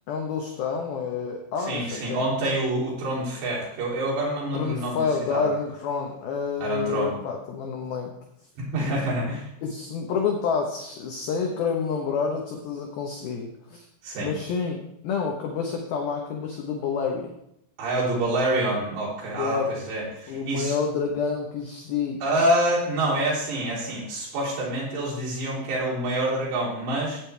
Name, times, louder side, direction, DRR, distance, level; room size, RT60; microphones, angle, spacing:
voice 1, 0.1-2.2 4.5-8.1 8.8-9.0 9.6-13.8 14.2-14.8 15.0-17.3 19.3-19.7 20.3-22.2, left 5 dB, 70° left, 1 dB, 2.4 m, -28 dB
voice 2, 1.7-5.0 5.3-5.4 6.6-7.1 8.6-9.5 14.0-14.3 17.8-20.8 22.2-27.2, right 1 dB, 60° right, -6 dB, 5.3 m, -26 dB
19.0 x 9.1 x 3.4 m, 0.78 s
omnidirectional pair, 5.8 m